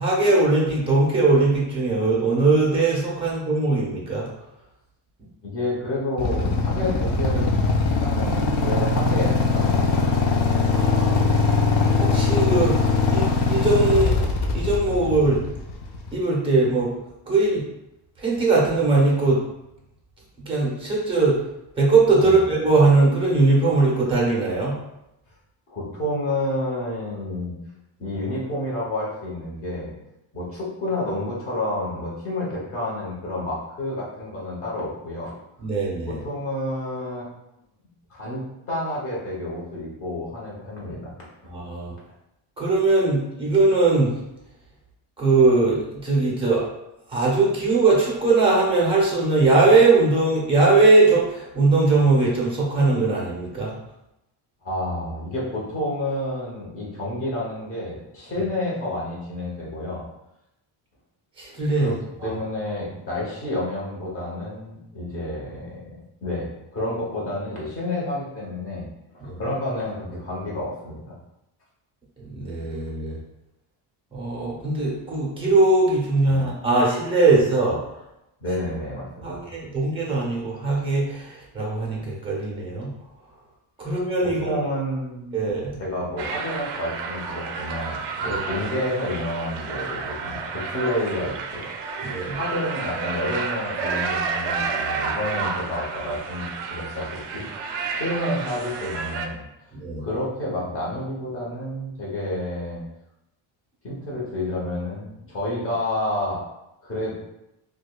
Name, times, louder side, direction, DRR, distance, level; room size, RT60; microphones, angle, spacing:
voice 1, 0.0-4.3 10.7-11.2 12.0-12.8 13.1-15.4 16.1-16.9 17.3-17.6 18.2-19.4 20.5-21.4 21.8-24.7 35.6-36.2 41.5-41.9 42.6-44.1 45.2-46.6 47.1-53.7 61.4-61.9 62.2-62.4 69.2-69.4 72.2-73.2 74.1-77.8 79.2-82.9 83.8-84.6 85.3-85.8 88.3-88.4 92.0-92.4 99.7-100.0, right 3 dB, 10° right, -4 dB, 0.7 m, -20 dB
voice 2, 5.4-10.3 22.2-22.4 25.7-27.5 28.0-29.9 30.3-35.3 36.0-37.3 38.1-41.1 54.6-60.0 61.8-61.9 62.2-66.0 66.2-68.9 69.1-71.2 76.3-76.4 78.4-79.5 84.2-85.5 85.8-91.6 92.3-97.4 97.9-99.4 100.0-102.8 103.8-106.4 106.8-107.1, left 1 dB, 25° left, -5 dB, 1.0 m, -29 dB
Motorcycle / Idling, 6.2-16.1, left 4 dB, 55° left, 0.6 m, -21 dB
sound 1, 86.2-99.3, right 5 dB, 55° right, 0.5 m, -30 dB
4.8 x 2.3 x 2.3 m, 0.87 s
cardioid pair, 180°, 50 cm